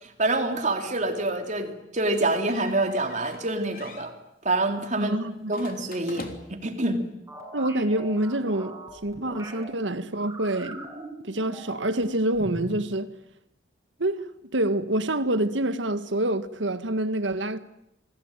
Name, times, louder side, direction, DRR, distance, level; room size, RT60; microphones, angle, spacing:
voice 1, 0.0-4.1 4.4-5.2 5.5-7.0, right 2 dB, 40° right, 3.5 m, -26 dB
sound 1, 2.3-3.5 3.7-4.1 5.5-6.7, left 2 dB, 50° left, 3.3 m, -43 dB
voice 2, 5.0-5.5 7.5-8.8 9.0-10.8 11.2-13.1 14.0-14.2 14.5-17.6, right 1 dB, 75° right, 1.8 m, -26 dB
sound 2, 7.3-9.6 10.1-12.0 12.3-12.9, right 1 dB, 15° right, 7.1 m, -40 dB
28.5 x 20.0 x 9.1 m
head